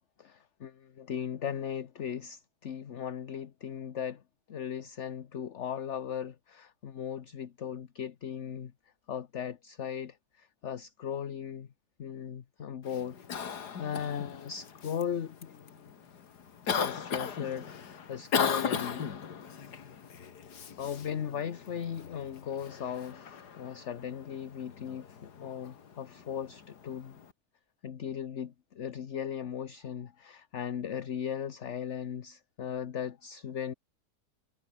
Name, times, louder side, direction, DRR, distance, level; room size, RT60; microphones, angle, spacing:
voice 1, 0.2-4.2 4.5-8.7 9.1-11.7 12.0-13.2 13.4-15.9 16.7-19.1 20.8-27.2 27.8-33.7, left 8 dB, 50° left, 1.2 m, -38 dB
Cough, 12.8-27.3, left 7 dB, 85° left, 2.3 m, -38 dB
omnidirectional pair, 1.7 m